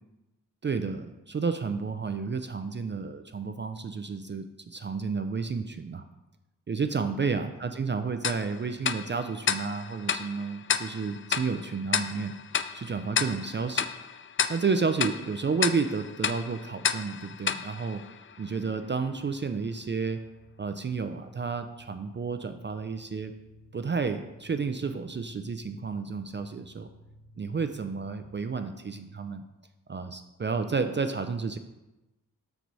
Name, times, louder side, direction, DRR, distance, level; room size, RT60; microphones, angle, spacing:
voice 1, 0.6-6.0 6.7-12.3 12.7-13.9 14.5-18.0 18.4-20.2 20.6-23.3 23.7-26.9 27.4-29.4 29.9-31.6, right 5 dB, 35° right, 8 dB, 0.5 m, -31 dB
Tick-tock, 8.2-18.7, left 7 dB, 35° left, 0.4 m, -32 dB
sound 1, 18.2-28.2, equal, 70° left, 2.0 m, -55 dB
6.0 x 4.6 x 4.0 m, 1.0 s
cardioid pair, 40°, 34 cm